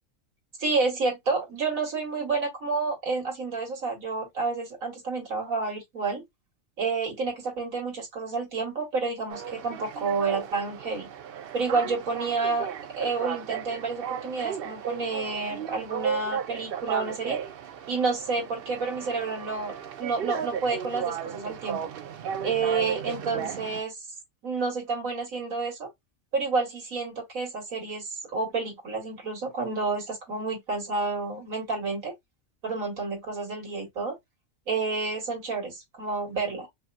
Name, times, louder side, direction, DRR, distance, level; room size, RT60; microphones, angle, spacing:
voice 1, 0.6-6.2 6.8-11.1 11.5-12.7 12.9-17.4 17.9-21.9 22.4-23.9 24.4-25.9 26.3-32.1 32.6-34.2 34.7-36.7, right 4 dB, 80° right, 2.4 m, -29 dB
sound 1, 9.3-23.8, right 8 dB, 55° right, 0.7 m, -35 dB
5.5 x 2.1 x 2.5 m
omnidirectional pair, 1.4 m